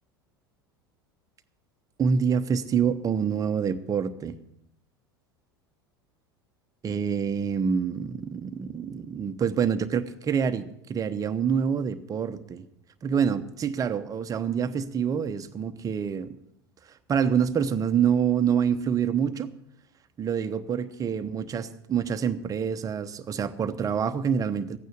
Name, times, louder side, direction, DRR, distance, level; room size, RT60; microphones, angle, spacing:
voice 1, 2.0-4.4 6.8-12.6 13.0-16.4 17.1-19.5 20.2-24.8, right 7 dB, 30° right, 9 dB, 1.0 m, -26 dB
15.0 x 9.3 x 6.6 m, 0.74 s
figure-of-eight pair, 80°, 13 cm